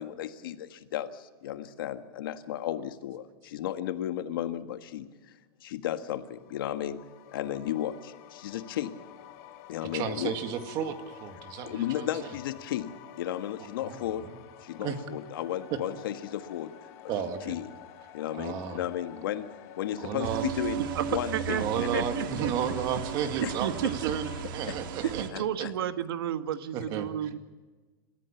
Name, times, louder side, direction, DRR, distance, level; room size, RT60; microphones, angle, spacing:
voice 1, 0.0-7.0 7.3-9.0 9.7-10.3 11.6-14.3 14.6-16.7 17.0-17.1 17.4-17.7 18.1-20.8 21.1-22.0 23.4-23.5 23.8-23.9 24.7-24.8 25.3-25.7, left 11 dB, 70° left, 9 dB, 1.6 m, -34 dB
sound 1, 6.2-24.4, left 11 dB, 40° left, 1.8 m, -49 dB
voice 2, 9.9-12.1 13.9-14.0 14.8-15.0 17.1-17.5 18.3-18.8 20.0-20.4 21.6-25.7 26.7-27.3, right 8 dB, 30° right, 7 dB, 2.0 m, -33 dB
sound 2, 20.2-25.3, right 8 dB, 60° right, 2.0 m, -35 dB
voice 3, 21.3-21.6 21.9-22.5 23.4-24.1 25.2-27.4, right 10 dB, 80° right, 10 dB, 1.6 m, -32 dB
27.5 x 14.5 x 7.2 m, 1.3 s
supercardioid pair, 165°, 12 cm